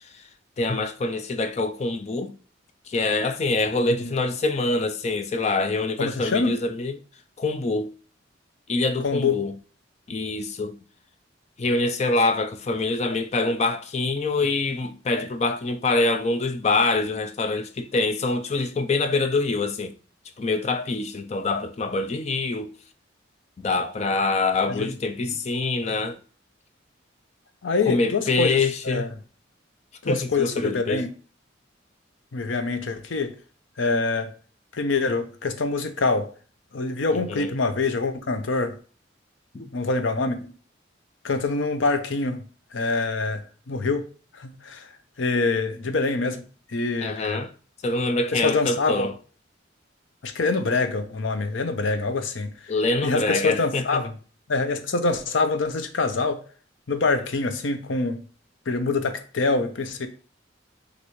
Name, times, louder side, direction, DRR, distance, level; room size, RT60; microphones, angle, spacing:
voice 1, 0.6-2.3 2.9-7.0 7.4-7.9 8.7-9.5 10.1-10.7 11.6-19.9 20.4-22.7 23.6-26.2 27.9-29.1 30.1-31.0 37.1-37.5 39.5-39.7 47.0-47.5 47.8-49.1 52.7-54.0, left 3 dB, 35° left, 0.4 m, -25 dB
voice 2, 6.0-6.6 9.0-9.4 24.7-25.0 27.6-29.1 30.0-31.1 32.3-33.4 33.8-34.3 34.7-36.3 36.7-38.8 39.7-40.5 41.2-42.4 42.7-43.4 43.7-44.0 44.3-44.9 45.2-46.4 46.7-47.4 48.3-49.1 50.2-52.5 53.0-54.1 54.5-56.4 56.9-58.2 58.7-60.1, left 3 dB, 80° left, 0.6 m, -25 dB
6.1 x 2.6 x 3.0 m
head